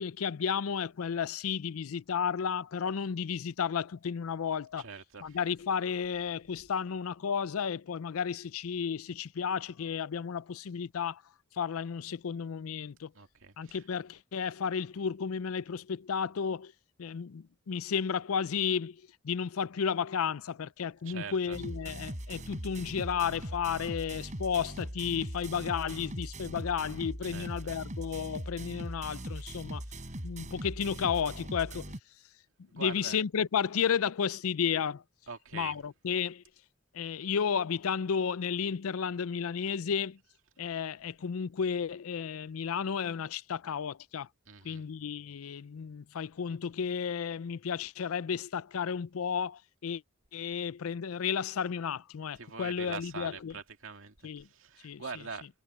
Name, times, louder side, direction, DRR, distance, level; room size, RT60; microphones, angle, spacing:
voice 1, 0.0-4.9 5.2-11.2 11.6-13.1 13.6-16.7 17.0-19.0 19.2-29.8 30.2-31.9 32.7-35.0 35.5-36.4 36.9-40.2 40.6-44.3 44.6-50.0 50.3-53.5 54.2-54.5 54.8-55.0, left 7 dB, 80° left, 0.5 m, -33 dB
voice 2, 4.8-5.4 13.1-13.8 21.0-21.6 27.2-27.7 29.9-30.2 32.8-33.2 35.3-35.8 44.5-44.8 52.4-55.5, right 5 dB, 65° right, 2.4 m, -44 dB
sound 1, 21.5-32.0, right 1 dB, 35° right, 7.4 m, -40 dB
head